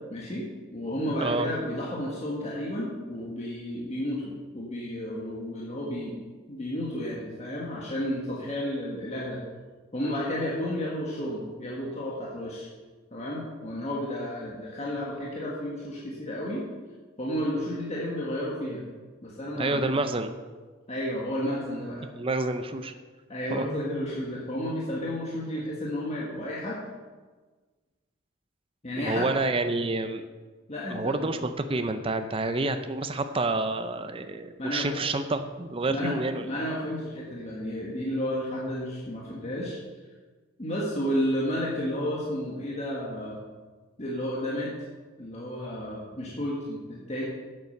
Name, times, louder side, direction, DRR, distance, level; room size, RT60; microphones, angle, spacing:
voice 1, 0.1-6.2 6.5-9.4 9.9-12.7 13.1-16.7 17.2-18.8 19.2-19.9 20.9-22.0 23.3-26.8 28.8-29.3 30.7-31.3 34.6-35.0 35.9-36.1 36.4-39.8 40.6-43.4 44.0-44.7 45.2-47.2, equal, 30° left, -4 dB, 1.7 m, -32 dB
voice 2, 19.6-20.3 22.2-22.9 23.5-23.7 29.0-30.2 30.9-36.4, right 2 dB, 25° right, 8 dB, 0.6 m, -28 dB
8.8 x 8.3 x 6.6 m, 1.4 s
head